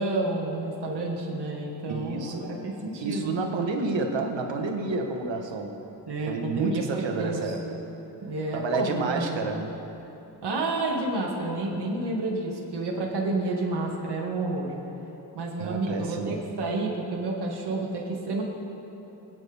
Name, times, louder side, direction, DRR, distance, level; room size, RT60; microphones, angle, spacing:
voice 1, 0.0-3.3 6.1-7.5 8.2-9.4 10.4-14.7 15.3-18.4, right 2 dB, 60° right, -3 dB, 2.0 m, -30 dB
voice 2, 1.9-2.6 3.0-5.8 6.3-7.8 8.5-9.8 15.6-16.4, right 3 dB, 85° right, 3 dB, 1.4 m, -30 dB
21.0 x 9.0 x 3.5 m, 3.0 s
cardioid pair, 80°, 44 cm